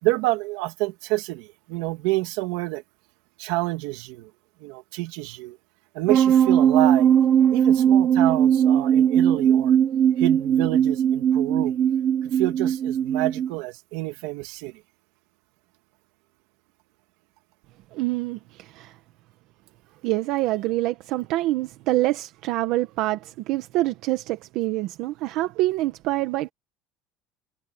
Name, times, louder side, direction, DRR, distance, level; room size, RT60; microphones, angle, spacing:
voice 1, 0.0-2.8 3.4-4.3 4.6-5.6 5.9-7.1 7.5-9.8 10.2-11.7 12.2-14.7, right 20 dB, 80° right, 2.6 m, -28 dB
sound 1, 6.1-13.5, right 9 dB, 35° right, 1.1 m, -19 dB
voice 2, 17.9-19.0 20.0-26.5, right 17 dB, 60° right, 1.4 m, -26 dB
cardioid pair, 165°, 0 cm